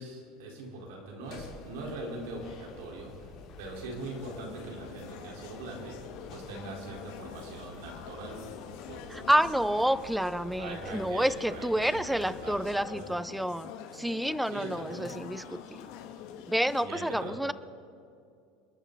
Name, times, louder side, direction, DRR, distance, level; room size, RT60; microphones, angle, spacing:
voice 1, 0.0-9.3 9.8-9.9 10.6-13.1 14.4-15.2 16.8-17.5, right 2 dB, 80° right, -1 dB, 4.1 m, -42 dB
sound 1, 1.2-12.8, left 4 dB, 45° left, 3.4 m, -50 dB
sound 2, 3.9-16.8, left 8 dB, 65° left, 1.7 m, -46 dB
voice 2, 9.1-15.9 16.5-17.5, equal, ahead, 16 dB, 0.4 m, -29 dB
29.0 x 10.0 x 4.0 m, 2.5 s
supercardioid pair, 145°, 0 cm